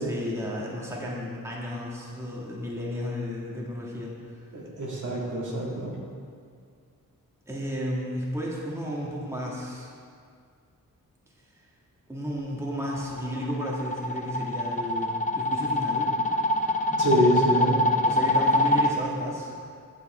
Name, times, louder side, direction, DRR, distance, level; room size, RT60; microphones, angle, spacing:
voice 1, 0.0-4.4 7.5-9.9 12.1-16.1 18.0-19.5, equal, 10° right, -5 dB, 1.8 m, -33 dB
voice 2, 4.5-5.9 17.0-17.8, equal, 60° right, -4 dB, 2.3 m, -25 dB
sound 1, 12.7-18.9, left 1 dB, 20° left, 0.7 m, -25 dB
9.2 x 7.2 x 4.4 m, 2.2 s
cardioid pair, 70°, 34 cm